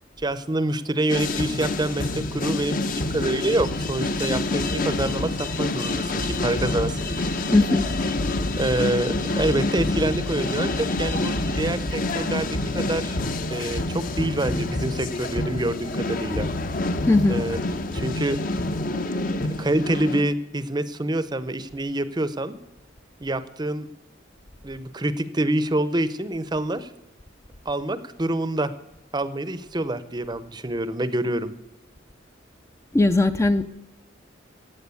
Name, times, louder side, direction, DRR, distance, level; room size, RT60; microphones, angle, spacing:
voice 1, 0.2-7.1 8.6-13.2 13.5-16.5 17.3-17.6 17.9-18.4 19.6-22.6 23.2-23.9 24.6-26.9 27.7-28.7 29.1-31.5, right 1 dB, 20° right, 14 dB, 0.7 m, -26 dB
sound 1, 1.1-20.2, left 2 dB, 45° left, 1.0 m, -27 dB
voice 2, 7.5-7.8 17.1-17.4 32.9-33.7, left 2 dB, 15° left, 9 dB, 0.5 m, -18 dB
15.5 x 8.9 x 8.4 m, 0.94 s
head